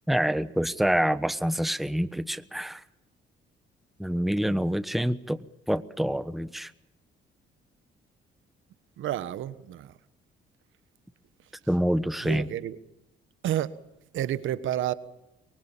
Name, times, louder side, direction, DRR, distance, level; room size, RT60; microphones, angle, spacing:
voice 1, 0.1-2.8 4.0-6.7 11.7-12.5, equal, ahead, 1.1 m, -27 dB
voice 2, 9.0-9.9 12.2-12.8 13.4-13.7 14.1-14.9, right 12 dB, 80° right, 1.4 m, -30 dB
23.5 x 23.5 x 7.3 m
cardioid pair, 90°, 20 cm